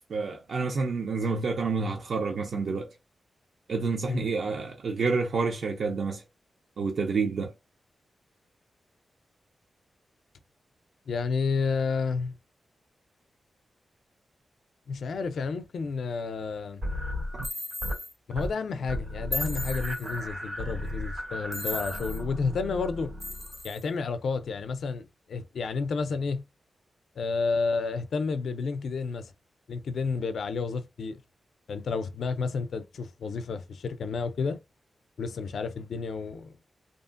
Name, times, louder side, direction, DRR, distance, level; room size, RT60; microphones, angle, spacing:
voice 1, 0.1-2.9 3.7-6.2 6.8-7.5, right 4 dB, 65° right, 0.4 m, -28 dB
voice 2, 11.1-12.4 14.9-16.8 18.3-23.2 23.6-26.5 27.2-29.3 29.7-31.2 31.7-34.6 35.2-36.5, left 4 dB, 75° left, 0.3 m, -31 dB
sound 1, 16.8-18.0 18.3-18.6 18.9-23.6, left 1 dB, 85° right, 1.7 m, -35 dB
sound 2, 17.4-18.1 19.3-20.2 21.5-22.2 23.2-23.8, left 1 dB, 5° left, 0.3 m, -36 dB
2.7 x 2.5 x 2.4 m
wide cardioid pair, 135°, 0 cm